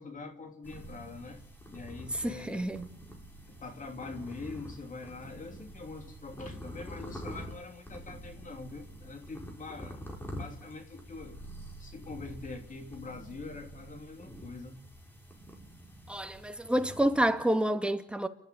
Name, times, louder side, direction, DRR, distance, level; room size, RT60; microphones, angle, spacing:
voice 1, 0.0-1.4 1.7-2.7 3.5-11.4 11.8-14.8 16.5-16.6, left 3 dB, 40° left, 3.2 m, -44 dB
sound 1, 0.6-17.3, equal, 10° left, 6.0 m, -46 dB
voice 2, 2.1-2.9 16.1-18.3, right 1 dB, 5° right, 2.1 m, -28 dB
29.0 x 12.0 x 9.9 m
cardioid pair, 90°, 20 cm